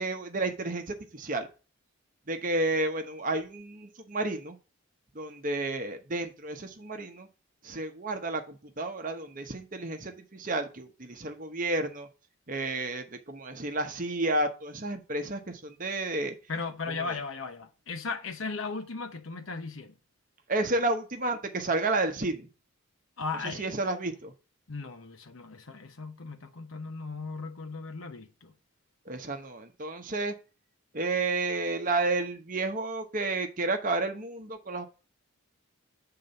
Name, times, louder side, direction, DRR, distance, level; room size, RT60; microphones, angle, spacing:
voice 1, 0.0-1.5 2.3-4.6 5.1-7.3 7.6-12.1 12.5-16.3 17.0-17.2 20.5-22.5 23.4-24.3 29.1-30.3 30.9-34.9, right 2 dB, 40° right, 0.9 m, -31 dB
voice 2, 16.5-19.9 23.2-23.7 24.7-28.5, left 4 dB, 70° left, 0.8 m, -37 dB
7.5 x 3.9 x 5.3 m
head